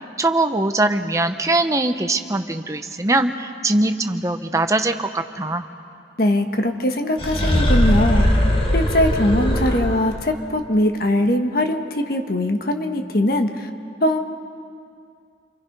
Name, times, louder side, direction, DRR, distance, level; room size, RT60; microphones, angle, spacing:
voice 1, 0.2-5.7, right 2 dB, 15° right, 7 dB, 0.9 m, -21 dB
voice 2, 6.2-8.4 8.7-13.7 14.0-14.2, left 1 dB, 55° left, 5 dB, 1.4 m, -21 dB
sound 1, 7.2-10.2, equal, 30° left, 2.0 m, -19 dB
29.0 x 24.0 x 5.4 m, 2.4 s
head